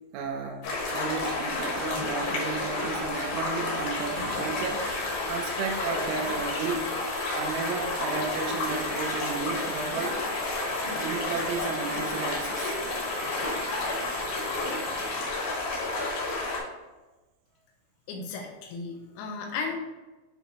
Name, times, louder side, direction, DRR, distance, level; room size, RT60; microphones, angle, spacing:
voice 1, 0.1-4.8 5.3-6.8 7.4-10.2 11.0-12.8, right 4 dB, 80° right, 0 dB, 2.9 m, -33 dB
sound 1, 0.6-16.6, left 2 dB, 65° left, 2.6 m, -31 dB
Engine, 3.9-15.6, right 1 dB, 65° right, 1.1 m, -43 dB
voice 2, 18.1-19.8, left 4 dB, 80° left, 2 dB, 3.3 m, -35 dB
9.7 x 3.4 x 3.0 m, 1.1 s
omnidirectional pair, 5.8 m